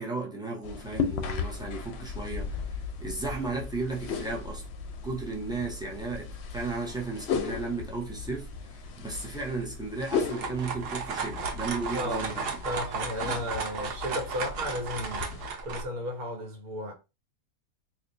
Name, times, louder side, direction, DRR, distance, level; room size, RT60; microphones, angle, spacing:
voice 1, 0.0-4.7 5.0-12.8, right 3 dB, 5° right, 0.3 m, -35 dB
sound 1, 0.6-15.5, left 6 dB, 60° left, 0.7 m, -36 dB
sound 2, 10.0-15.8, right 5 dB, 55° right, 0.8 m, -34 dB
voice 2, 11.9-16.9, left 1 dB, 80° right, 1.5 m, -34 dB
4.2 x 2.4 x 2.6 m
omnidirectional pair, 1.5 m